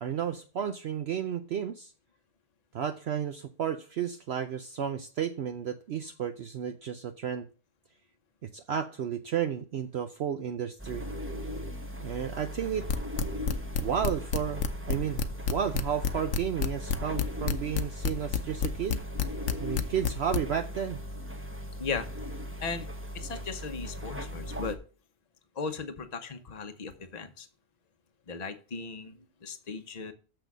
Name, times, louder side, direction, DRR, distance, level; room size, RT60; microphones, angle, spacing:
voice 1, 0.0-1.9 2.7-7.5 8.4-11.1 12.0-12.9 13.8-14.6 14.9-19.0 19.6-21.0, right 8 dB, 60° right, 7 dB, 0.8 m, -32 dB
sound 1, 10.8-24.7, equal, 10° right, 0.9 m, -38 dB
sound 2, 12.9-20.4, left 7 dB, 65° left, 1.0 m, -28 dB
voice 2, 22.6-24.8 25.5-27.5 28.3-30.1, left 4 dB, 35° left, 8 dB, 0.9 m, -37 dB
6.9 x 6.1 x 6.0 m, 0.37 s
omnidirectional pair, 1.4 m